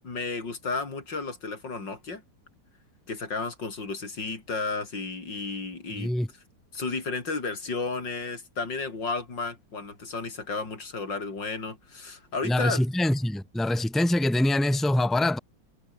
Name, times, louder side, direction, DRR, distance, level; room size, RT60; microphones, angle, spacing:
voice 1, 0.0-2.2 3.1-6.1 6.7-12.8, left 3 dB, 80° left, 4.8 m, -33 dB
voice 2, 6.0-6.3 12.4-15.4, left 1 dB, ahead, 1.6 m, -24 dB
omnidirectional pair, 1.9 m